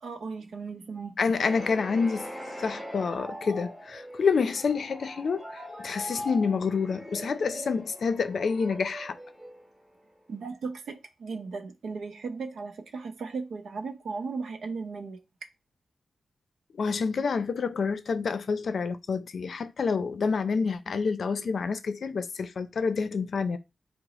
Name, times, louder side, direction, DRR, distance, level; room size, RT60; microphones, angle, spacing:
voice 1, 0.0-1.2 10.3-15.2, right 4 dB, 90° right, 0.7 m, -36 dB
voice 2, 1.2-2.3 2.6-9.2 16.8-23.6, left 5 dB, 65° left, 0.5 m, -28 dB
sound 1, 1.4-10.1, equal, 10° right, 1.1 m, -41 dB
4.8 x 2.0 x 3.9 m
wide cardioid pair, 120°, 0 cm